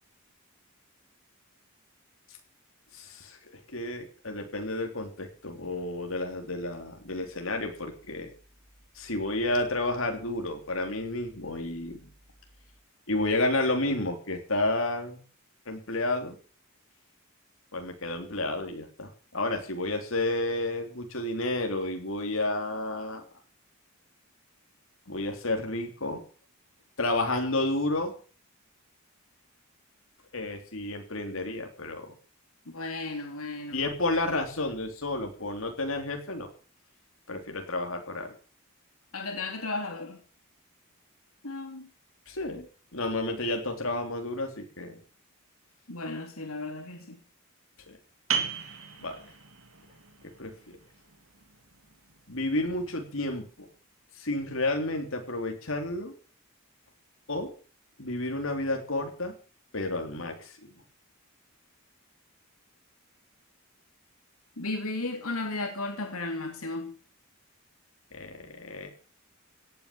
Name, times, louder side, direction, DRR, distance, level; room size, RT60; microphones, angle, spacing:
voice 1, 2.9-3.4 3.7-8.3 8.9-12.0 13.1-15.2 15.6-16.3 17.7-23.2 25.1-26.2 27.0-28.1 30.3-32.1 33.7-36.5 37.3-38.3 42.3-42.7 42.9-45.0 47.9-48.0 49.0-49.2 50.4-50.8 52.3-53.7 54.2-56.1 57.3-57.5 58.0-59.3 59.7-60.5 68.1-68.9, left 2 dB, 65° left, 3.5 m, -31 dB
voice 2, 32.7-33.9 39.1-40.2 41.4-41.9 45.9-47.2 64.6-67.0, left 2 dB, 80° left, 3.1 m, -34 dB
sound 1, 48.3-53.7, right 7 dB, 70° right, 2.6 m, -37 dB
17.5 x 9.5 x 7.1 m
head